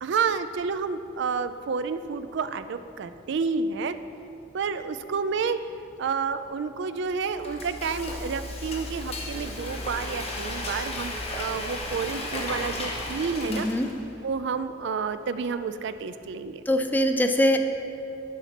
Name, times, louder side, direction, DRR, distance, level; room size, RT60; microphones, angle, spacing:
voice 1, 0.0-4.0 4.5-5.6 6.0-13.7 14.2-16.6, right 5 dB, 65° right, 11 dB, 0.4 m, -30 dB
Frying (food), 7.1-14.2, left 1 dB, 35° left, 0.9 m, -34 dB
voice 2, 13.5-13.9 16.7-17.6, left 1 dB, 10° left, 6 dB, 0.4 m, -22 dB
10.0 x 4.2 x 5.8 m, 2.7 s
head